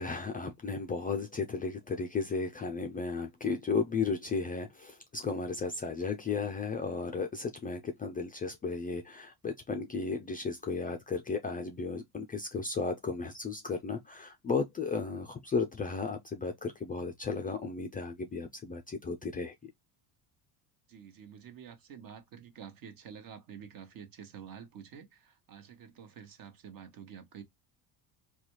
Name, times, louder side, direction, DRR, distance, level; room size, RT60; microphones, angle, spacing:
voice 1, 0.0-19.7, left 4 dB, 20° left, 0.4 m, -34 dB
voice 2, 20.9-27.4, right 8 dB, 45° right, 1.0 m, -49 dB
3.9 x 2.3 x 3.0 m
supercardioid pair, 100°, 46 cm